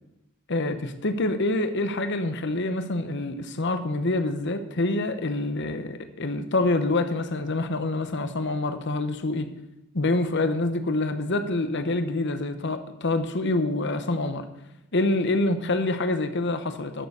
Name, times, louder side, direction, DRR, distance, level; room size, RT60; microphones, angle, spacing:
voice 1, 0.5-9.5 9.9-14.5 14.9-17.1, left 2 dB, 55° left, 9 dB, 1.0 m, -26 dB
12.0 x 7.0 x 6.7 m, 0.92 s
head